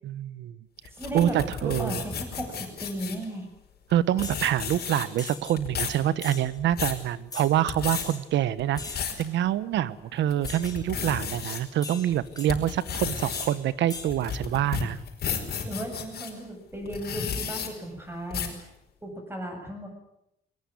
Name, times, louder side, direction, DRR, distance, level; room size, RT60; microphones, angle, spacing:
voice 1, 0.0-0.6 1.1-2.0 3.9-8.8 9.2-15.0, right 11 dB, 85° right, 17 dB, 1.2 m, -26 dB
sound 1, 0.8-3.2 3.9-4.0 4.2-5.2 5.6-6.0 6.5-7.0 7.5-8.0 8.6-9.2 9.7-9.8 10.3-11.6 12.1-16.3 16.9-17.7 18.3-18.6, left 7 dB, 60° left, 5.1 m, -33 dB
voice 2, 0.9-1.4 1.6-3.5 15.6-18.6 19.0-19.9, right 1 dB, 10° right, 4 dB, 7.4 m, -35 dB
sound 2, 4.2-4.4 5.2-5.6 6.2-6.4 7.3-7.5 7.9-8.2 8.8-9.1 10.4-10.8 11.8-12.5 13.3-13.6 13.9-14.1, left 4 dB, 20° left, 4.6 m, -39 dB
21.0 x 20.5 x 9.8 m, 0.82 s
cardioid pair, 125°, 18 cm